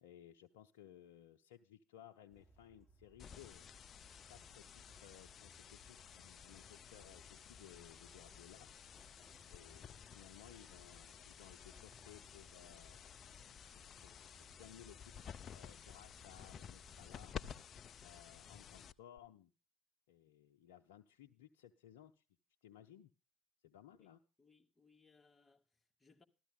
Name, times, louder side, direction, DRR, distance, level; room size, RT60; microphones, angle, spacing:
voice 1, 0.0-3.7 4.3-8.7 9.1-13.0 13.8-17.6 18.0-19.5 20.1-22.2 22.6-23.1 23.6-24.2, left 11 dB, 75° left, 0.7 m, -60 dB
sound 1, 2.3-17.6, right 1 dB, 10° right, 6.5 m, -67 dB
sound 2, 3.2-19.2, left 8 dB, 45° left, 0.6 m, -54 dB
voice 2, 24.4-26.2, left 4 dB, 15° left, 2.2 m, -69 dB
14.0 x 13.0 x 3.6 m
hypercardioid pair, 70°, 0 cm